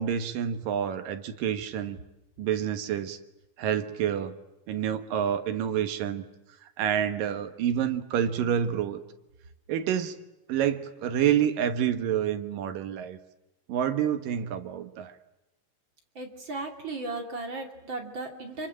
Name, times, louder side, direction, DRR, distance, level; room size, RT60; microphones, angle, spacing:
voice 1, 0.0-2.0 2.4-3.2 3.6-4.4 4.7-6.2 6.8-9.0 9.7-10.1 10.5-13.2 13.7-15.1, right 9 dB, 80° right, 9 dB, 3.1 m, -28 dB
voice 2, 16.1-18.7, right 2 dB, 35° right, 3 dB, 3.1 m, -36 dB
26.5 x 24.5 x 8.9 m, 0.93 s
omnidirectional pair, 3.9 m